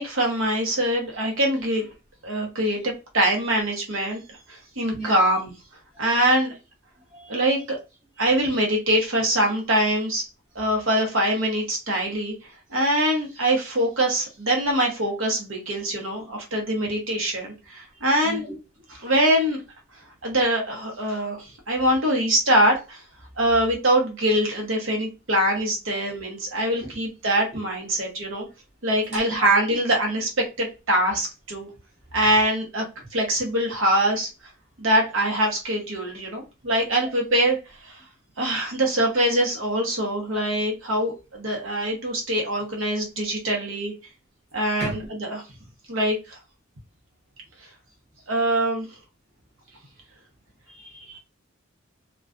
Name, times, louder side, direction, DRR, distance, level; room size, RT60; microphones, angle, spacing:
voice 1, 0.0-1.8 2.2-4.2 4.5-5.5 6.0-6.5 7.3-7.8 8.2-10.2 10.5-12.3 12.7-18.4 19.0-19.6 20.2-23.0 23.4-28.5 28.8-31.7 32.1-32.8 33.1-34.3 34.8-37.6 38.4-43.9 44.5-45.4 45.9-46.4 48.3-48.9, right 1 dB, 65° right, 0.9 m, -23 dB
voice 2, 29.1-29.8 44.8-45.1 50.7-51.2, right 1 dB, 30° right, 0.9 m, -35 dB
2.4 x 2.2 x 2.4 m
head